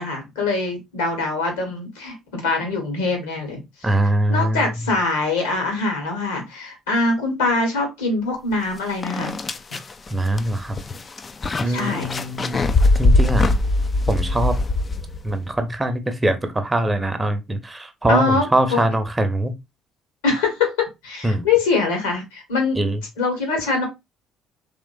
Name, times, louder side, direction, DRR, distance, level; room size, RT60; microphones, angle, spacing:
voice 1, 0.0-3.6 4.3-9.3 11.7-12.1 18.1-18.8 20.2-22.8 23.2-23.9, left 3 dB, 75° left, 1.5 m, -23 dB
voice 2, 3.8-4.8 10.1-10.7 11.6-12.7 12.9-13.5 14.1-14.5 15.2-19.5 21.2-21.5 22.7-23.0, right 1 dB, 20° right, 0.8 m, -22 dB
sound 1, 8.5-8.6 9.0-15.4, left 2 dB, 30° left, 0.4 m, -21 dB
3.6 x 3.3 x 2.5 m
figure-of-eight pair, 50°, 0 cm